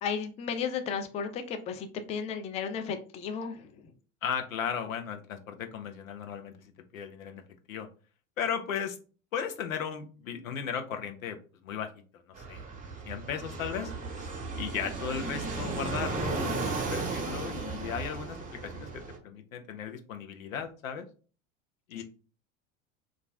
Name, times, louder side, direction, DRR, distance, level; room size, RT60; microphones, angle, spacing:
voice 1, 0.0-3.7 21.9-22.0, left 6 dB, 20° left, 7 dB, 0.3 m, -34 dB
voice 2, 4.2-7.4 7.7-7.9 8.4-9.0 9.3-11.4 11.6-12.6 13.0-13.9 14.5-18.4 18.6-18.9 19.2-21.1 21.9-22.0, left 7 dB, 85° left, 7 dB, 0.6 m, -36 dB
Fixed-wing aircraft airplane, 12.3-19.2, right 3 dB, 20° right, 0.7 m, -35 dB
2.4 x 2.0 x 3.4 m, 0.37 s
hypercardioid pair, 85°, 39 cm